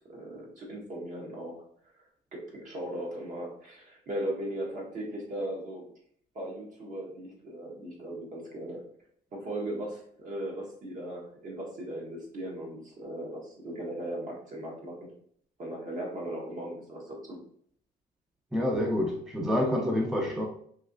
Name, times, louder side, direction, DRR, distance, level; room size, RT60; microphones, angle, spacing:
voice 1, 0.1-1.6 2.0-2.1 2.3-5.9 6.3-8.8 9.3-15.0 15.6-17.4, right 1 dB, 50° right, 1.2 m, -38 dB
voice 2, 18.5-20.5, left 1 dB, 5° right, 0.4 m, -27 dB
3.1 x 2.8 x 2.5 m
cardioid pair, 110°, 17 cm